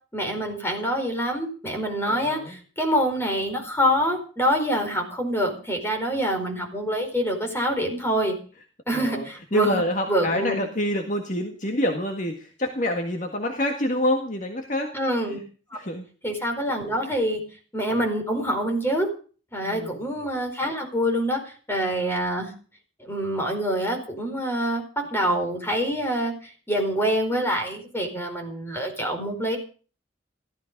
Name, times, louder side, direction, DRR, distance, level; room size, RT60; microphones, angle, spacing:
voice 1, 0.1-8.3 8.9-9.8 10.1-10.6 14.9-15.4 15.7-15.8 16.2-17.4 17.7-19.1 19.5-22.5 23.0-29.6, equal, 10° left, 3 dB, 4.6 m, -26 dB
voice 2, 2.0-2.6 8.9-14.9 15.3-15.4 15.7-16.1 19.6-20.0, left 1 dB, 40° left, 4 dB, 1.8 m, -27 dB
15.5 x 13.5 x 5.3 m, 0.39 s
head